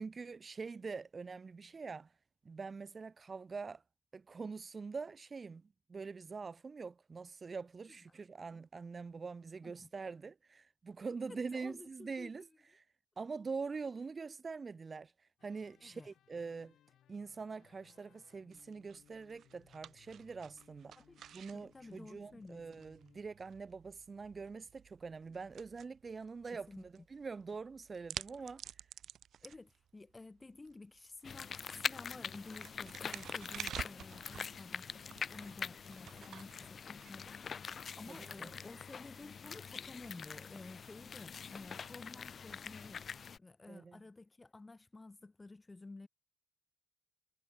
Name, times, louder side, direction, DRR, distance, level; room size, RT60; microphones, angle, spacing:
voice 1, 0.0-2.1 2.4-3.8 4.1-12.5 12.7-12.8 13.2-16.7 17.1-21.0 21.3-28.6 38.1-38.5 43.7-44.0, right 4 dB, 35° right, 0.3 m, -44 dB
voice 2, 11.3-12.3 15.8-16.1 21.0-21.2 21.5-22.6 26.7-26.9 28.4-28.5 29.4-35.0 35.3-37.4 38.0-43.0 43.4-46.1, left 3 dB, 20° left, 1.2 m, -52 dB
sound 1, 15.4-23.2, left 11 dB, 75° left, 2.4 m, -68 dB
sound 2, 18.5-37.7, right 9 dB, 65° right, 1.6 m, -52 dB
sound 3, 31.2-43.4, left 6 dB, 45° left, 0.6 m, -44 dB
cardioid pair, 90°, 0 cm